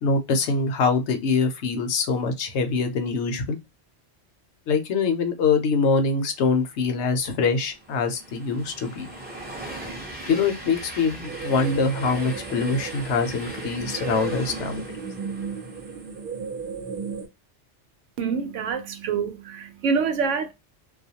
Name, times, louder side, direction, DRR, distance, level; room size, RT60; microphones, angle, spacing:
voice 1, 0.0-3.6 4.7-9.1 10.3-14.8, left 4 dB, 70° left, 0.9 m, -24 dB
Train, 6.9-16.3, right 1 dB, 10° right, 0.7 m, -39 dB
sound 1, 11.2-17.3, right 6 dB, 50° right, 0.7 m, -35 dB
voice 2, 18.2-20.5, right 5 dB, 80° right, 1.0 m, -26 dB
2.4 x 2.2 x 2.7 m
omnidirectional pair, 1.2 m